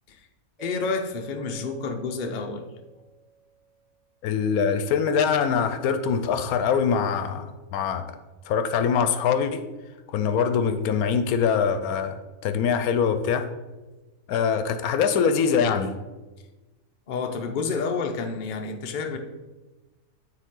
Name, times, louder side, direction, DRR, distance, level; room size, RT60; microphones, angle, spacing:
voice 1, 0.6-2.7 17.1-19.2, left 4 dB, 50° left, 4 dB, 0.5 m, -29 dB
Mallet percussion, 0.6-3.6, right 5 dB, ahead, 0.3 m, -45 dB
voice 2, 4.2-8.0 8.5-9.6 10.1-12.1 12.4-13.5 14.3-15.9, left 6 dB, 75° left, 10 dB, 1.0 m, -23 dB
9.0 x 3.9 x 3.7 m, 1.2 s
omnidirectional pair, 1.6 m